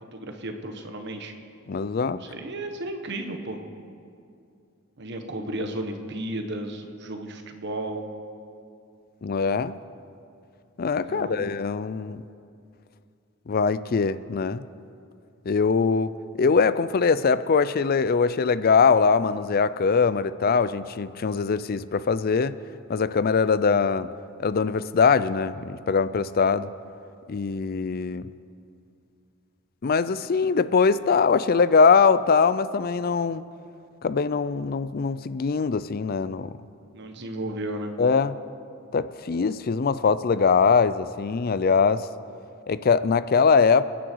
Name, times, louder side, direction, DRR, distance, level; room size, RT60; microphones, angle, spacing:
voice 1, 0.1-1.3 2.2-3.6 5.0-8.0 11.0-11.5 36.9-37.9, right 1 dB, 55° right, 5 dB, 1.4 m, -34 dB
voice 2, 1.7-2.2 9.2-9.7 10.8-12.2 13.5-14.6 15.5-22.6 22.9-24.1 24.4-26.7 27.3-28.3 29.8-33.5 34.0-36.5 38.0-38.4 38.9-42.1 42.7-43.8, left 5 dB, 45° left, 15 dB, 0.4 m, -22 dB
27.5 x 10.5 x 4.7 m, 2.5 s
head